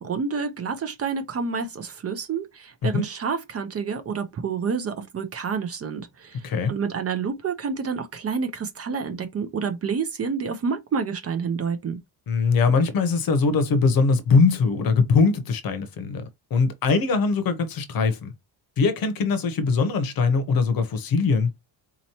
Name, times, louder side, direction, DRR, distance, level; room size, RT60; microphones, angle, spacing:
voice 1, 0.0-12.0, right 5 dB, 35° right, 0.6 m, -29 dB
voice 2, 12.3-16.2 16.5-18.3 18.8-21.5, left 4 dB, 50° left, 0.9 m, -21 dB
4.1 x 2.9 x 2.8 m
cardioid pair, 170°, 44 cm